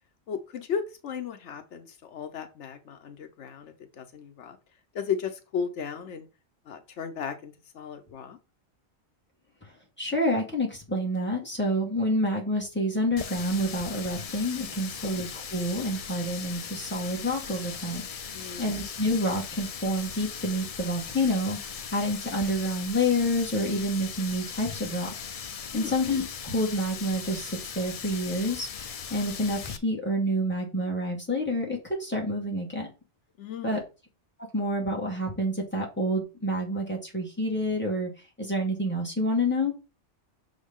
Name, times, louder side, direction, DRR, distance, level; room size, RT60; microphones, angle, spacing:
voice 1, 0.3-4.6 4.9-6.3 6.7-8.4 15.1-15.2 18.3-18.8 25.7-26.0 33.4-33.8, left 7 dB, 80° left, 8 dB, 1.1 m, -35 dB
voice 2, 10.0-25.1 25.7-32.9 33.6-33.8 34.5-38.1 38.4-39.7, equal, 10° left, -2 dB, 2.0 m, -28 dB
Water tap faucet, 13.2-29.8, left 7 dB, 50° left, 0.4 m, -39 dB
6.2 x 5.0 x 3.7 m, 0.30 s
omnidirectional pair, 1.2 m